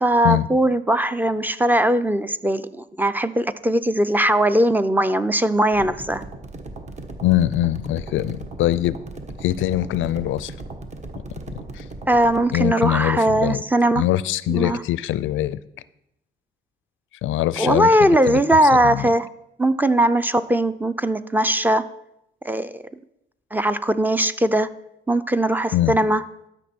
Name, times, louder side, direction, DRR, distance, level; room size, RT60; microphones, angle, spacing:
voice 1, 0.0-6.3 12.1-14.0 14.5-14.8 17.6-19.3 19.6-21.8 22.4-22.8 23.5-24.7 25.1-26.2, right 1 dB, 10° right, 13 dB, 0.5 m, -19 dB
sound 1, 5.7-12.4, right 2 dB, 35° right, 1.2 m, -37 dB
voice 2, 7.2-9.0 9.4-10.5 11.7-11.8 12.5-13.6 13.9-15.6 17.2-18.4 18.8-19.1 25.7-26.0, left 14 dB, 75° left, 17 dB, 0.4 m, -22 dB
12.5 x 6.1 x 4.4 m, 0.82 s
cardioid pair, 90°, 20 cm